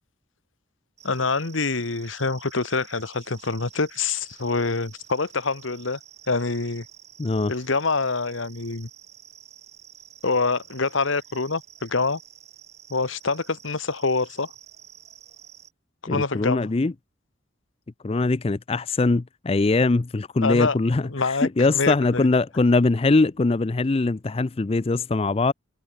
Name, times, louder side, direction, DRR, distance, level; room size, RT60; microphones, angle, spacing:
voice 1, 1.0-6.0 6.3-6.8 7.5-8.9 10.2-12.2 12.9-14.5 16.1-16.6 20.4-20.8 21.1-22.3, left 4 dB, 80° left, 1.4 m, -25 dB
sound 1, 1.0-15.7, right 9 dB, 35° right, 4.3 m, -49 dB
voice 2, 7.2-7.5 16.1-16.9 18.0-25.5, left 3 dB, 30° left, 0.4 m, -22 dB
head